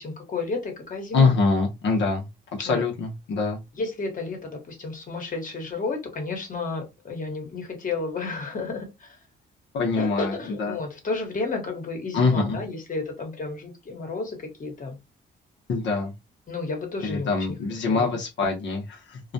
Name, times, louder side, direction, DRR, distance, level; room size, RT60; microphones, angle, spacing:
voice 1, 0.0-1.3 2.6-2.8 3.7-9.1 10.0-15.0 16.5-17.6 17.9-18.1, left 3 dB, 40° left, 1.1 m, -32 dB
voice 2, 1.1-2.3 2.6-3.6 9.7-10.8 12.1-12.6 15.7-16.1 17.0-19.2, left 4 dB, 65° left, 0.8 m, -24 dB
2.3 x 2.2 x 2.6 m
cardioid pair, 90°, 20 cm